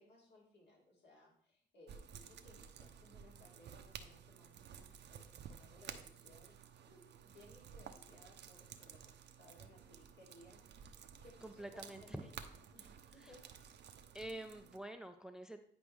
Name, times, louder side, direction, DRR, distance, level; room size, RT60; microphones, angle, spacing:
voice 1, 0.0-13.4, left 1 dB, 60° left, -2 dB, 3.1 m, -63 dB
sound 1, 1.9-14.8, right 8 dB, 60° right, 0.8 m, -54 dB
voice 2, 11.4-12.3 13.2-13.3 14.1-15.6, right 1 dB, 5° right, 8 dB, 0.5 m, -47 dB
9.9 x 5.1 x 3.4 m, 0.62 s
cardioid pair, 90°, 20 cm